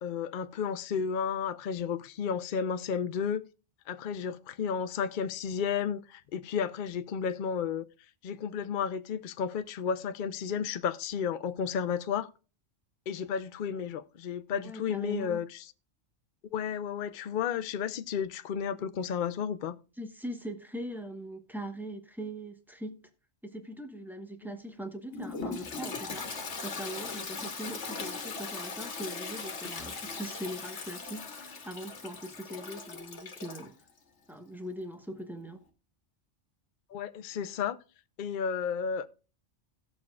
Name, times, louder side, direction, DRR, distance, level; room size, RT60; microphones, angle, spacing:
voice 1, 0.0-3.4 3.9-7.9 8.2-12.3 13.1-15.6 16.5-19.8 36.9-37.8 38.2-39.2, left 7 dB, 55° left, 0.7 m, -32 dB
voice 2, 14.5-15.4 20.0-23.0 23.4-33.7 34.3-35.6, right 1 dB, ahead, 1.0 m, -41 dB
Toilet flush, 25.1-33.7, left 4 dB, 75° left, 1.5 m, -39 dB
17.0 x 7.0 x 2.4 m
omnidirectional pair, 1.2 m